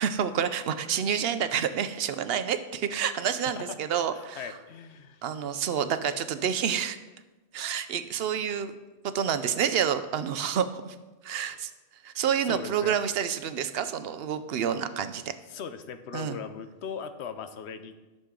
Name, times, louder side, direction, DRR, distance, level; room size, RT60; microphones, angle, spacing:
voice 1, 0.0-4.4 5.2-7.0 7.5-8.7 9.0-11.0 11.2-11.7 12.0-15.2 16.1-16.4, right 8 dB, 70° right, 11 dB, 0.8 m, -28 dB
voice 2, 3.3-3.8 4.1-5.2 11.5-11.6 12.4-13.0 15.5-18.0, left 6 dB, 80° left, 10 dB, 0.9 m, -39 dB
11.5 x 6.5 x 3.7 m, 1.2 s
omnidirectional pair, 1.1 m